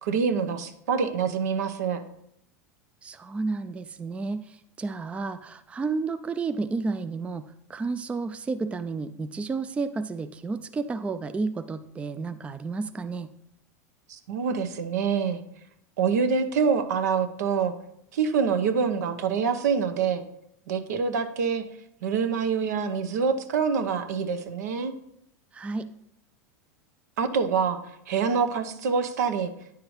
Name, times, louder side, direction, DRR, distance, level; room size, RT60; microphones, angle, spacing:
voice 1, 0.0-2.0 14.1-15.4 16.0-17.7 18.1-20.2 20.7-21.6 22.0-24.9 27.2-27.8 28.1-29.5, right 6 dB, 70° right, 9 dB, 0.7 m, -26 dB
voice 2, 3.0-13.3 25.5-25.9, right 4 dB, 15° right, 11 dB, 0.3 m, -31 dB
9.4 x 4.8 x 3.1 m, 0.75 s
hypercardioid pair, 95°, 9 cm